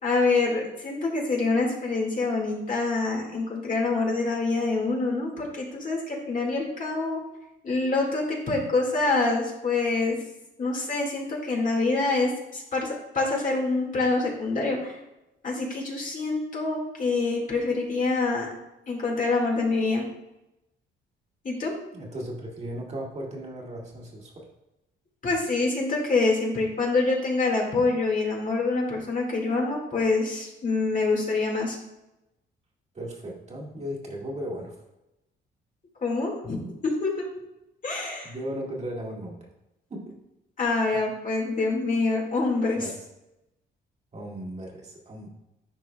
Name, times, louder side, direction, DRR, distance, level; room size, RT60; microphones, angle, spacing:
voice 1, 0.0-7.2 7.6-10.2 10.6-15.0 15.4-18.5 18.9-20.0 21.4-21.7 25.2-31.8 36.0-36.6 36.8-37.3 37.8-38.3 40.6-42.9, left 3 dB, 40° left, -1 dB, 1.8 m, -26 dB
voice 2, 21.9-24.5 32.9-34.8 38.2-39.5 39.9-40.2 40.9-41.0 42.8-43.0 44.1-45.3, equal, 35° right, -2 dB, 1.7 m, -36 dB
10.5 x 4.6 x 2.2 m, 0.92 s
cardioid pair, 90°, 20 cm